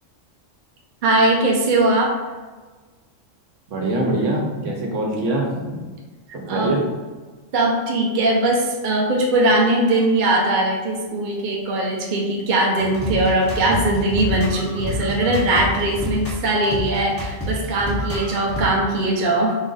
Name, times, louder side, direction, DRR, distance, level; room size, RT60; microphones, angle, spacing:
voice 1, 1.0-2.1 6.5-6.7 7.5-19.6, right 2 dB, 45° right, -1 dB, 0.7 m, -20 dB
voice 2, 3.7-5.8 6.3-6.8, right 1 dB, 70° right, -1 dB, 1.2 m, -23 dB
sound 1, 12.8-18.7, left 1 dB, 15° left, 0.6 m, -28 dB
4.2 x 2.5 x 3.9 m, 1.3 s
omnidirectional pair, 1.3 m